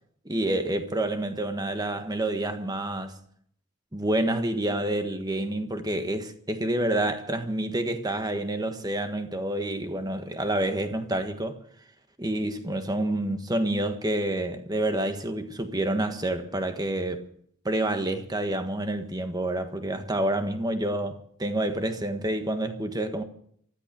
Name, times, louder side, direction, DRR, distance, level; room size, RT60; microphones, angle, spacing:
voice 1, 0.2-3.2 3.9-11.6 12.2-17.3 17.6-23.2, right 1 dB, 20° right, 1.4 m, -28 dB
15.0 x 13.5 x 6.8 m
head